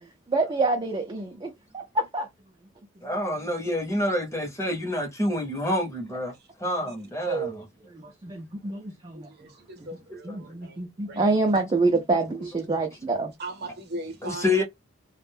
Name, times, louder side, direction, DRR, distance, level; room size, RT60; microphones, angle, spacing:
voice 1, 0.3-2.3 7.3-7.6 7.9-9.3 10.2-13.3, right 3 dB, 25° right, 0.4 m, -27 dB
voice 2, 3.0-6.3 6.6-7.6 10.3-10.4 12.4-12.5 14.2-14.6, left 1 dB, 15° left, 0.7 m, -27 dB
voice 3, 9.1-10.8 11.1-11.6 13.4-14.6, right 1 dB, 50° right, 0.8 m, -39 dB
2.4 x 2.1 x 3.3 m
head